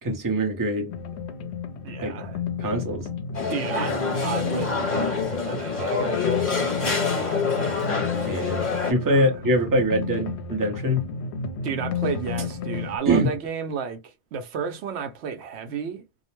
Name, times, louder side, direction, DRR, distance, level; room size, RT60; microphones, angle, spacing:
voice 1, 0.0-0.9 2.0-2.2 2.6-3.1 8.3-11.0 13.1-13.3, right 1 dB, 20° right, 0.6 m, -23 dB
sound 1, 0.9-13.0, left 5 dB, 80° left, 0.9 m, -32 dB
voice 2, 1.8-2.4 3.5-7.9 9.0-9.3 11.6-16.0, right 6 dB, 80° right, 0.9 m, -33 dB
sound 2, 3.3-8.9, left 4 dB, 45° left, 1.1 m, -26 dB
2.4 x 2.1 x 3.0 m
omnidirectional pair, 1.1 m